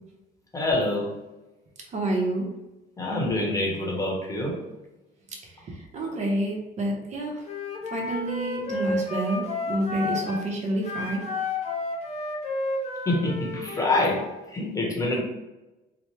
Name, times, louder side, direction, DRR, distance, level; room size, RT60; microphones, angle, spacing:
voice 1, 0.5-1.1 3.0-4.6 13.1-15.2, left 2 dB, 20° left, -3 dB, 1.0 m, -26 dB
voice 2, 1.9-2.5 5.4-7.4 7.9-11.2, right 1 dB, 45° right, 0 dB, 0.8 m, -28 dB
Wind instrument woodwind instrument, 7.5-10.5 10.8-14.3, left 3 dB, 40° left, 0.6 m, -31 dB
3.0 x 2.1 x 3.1 m, 1.0 s
cardioid pair, 110°, 17 cm